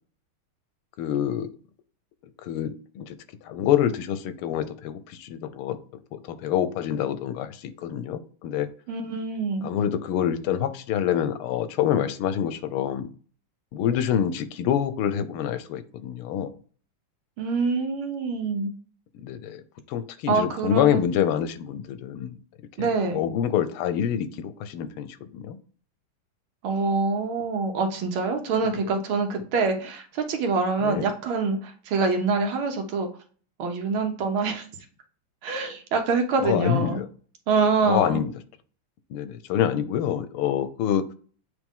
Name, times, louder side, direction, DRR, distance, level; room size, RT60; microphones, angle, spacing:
voice 1, 1.0-1.5 2.5-3.1 3.4-5.8 6.1-8.7 9.6-13.1 13.7-16.6 19.2-19.6 19.9-22.3 22.8-25.6 30.8-31.1 36.4-37.1 37.8-38.3 39.1-41.0, left 9 dB, 85° left, 12 dB, 1.5 m, -26 dB
voice 2, 8.9-9.7 17.4-18.7 20.3-21.0 22.8-23.2 26.6-33.1 33.6-34.7 35.4-37.0 37.5-38.2, right 4 dB, 75° right, 5 dB, 1.8 m, -25 dB
8.3 x 3.2 x 3.6 m, 0.43 s
omnidirectional pair, 2.3 m